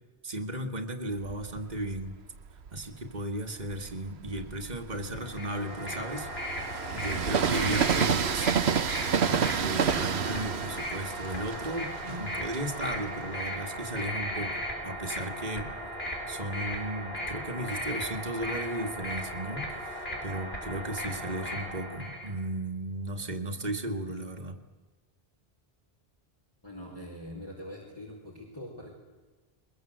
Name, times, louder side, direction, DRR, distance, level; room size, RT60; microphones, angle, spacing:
voice 1, 0.2-2.2 2.7-8.9 9.2-14.6 14.8-15.7 16.3-24.6, right 1 dB, 40° right, 3 dB, 2.2 m, -35 dB
Train, 1.2-2.9 3.5-14.1, right 7 dB, 85° right, 1.3 m, -31 dB
sound 1, 5.2-22.3, equal, 70° left, 5.7 m, -37 dB
voice 2, 26.6-28.9, left 1 dB, 25° left, -4 dB, 4.6 m, -43 dB
22.5 x 22.0 x 8.0 m, 1.3 s
omnidirectional pair, 1.1 m